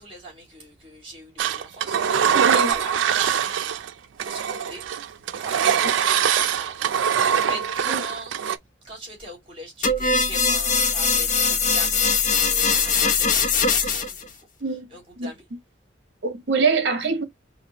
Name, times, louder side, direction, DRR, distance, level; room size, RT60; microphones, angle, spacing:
voice 1, 0.0-2.0 2.5-3.7 4.2-4.8 5.4-5.6 5.9-8.4 8.8-14.3 14.6-15.4, right 2 dB, 30° right, 2.7 m, -40 dB
Engine, 1.4-3.9 4.2-8.6, right 8 dB, 80° right, 0.4 m, -23 dB
voice 2, 2.3-2.7 7.9-8.0 14.6-14.9 15.2-15.3 16.2-17.2, right 4 dB, 60° right, 1.0 m, -24 dB
sound 1, 9.8-14.2, left 5 dB, 45° left, 0.8 m, -21 dB
5.0 x 2.2 x 2.8 m
head